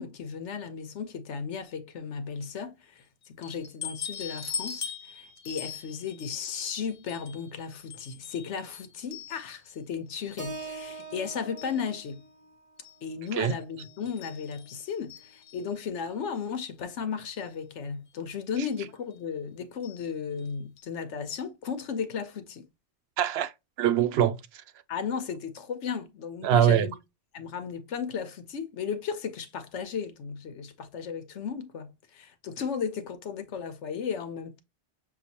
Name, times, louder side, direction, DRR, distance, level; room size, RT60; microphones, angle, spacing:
voice 1, 0.0-12.2 13.0-22.7 24.9-27.0 27.3-34.6, left 6 dB, 80° left, 1.1 m, -35 dB
sound 1, 3.4-9.8 10.2-11.2 11.6-12.1 12.8-12.9 13.3-13.4 13.8-15.8 16.8-16.9 17.3-17.4 18.5-18.7 19.8-20.0 20.4-20.5 20.8-20.9, left 6 dB, 45° left, 1.1 m, -42 dB
Keyboard (musical), 10.4-14.6, right 3 dB, 15° right, 1.0 m, -44 dB
voice 2, 23.2-23.5 23.8-24.6 26.4-26.9, right 10 dB, 65° right, 0.8 m, -23 dB
6.7 x 2.3 x 2.8 m
omnidirectional pair, 1.2 m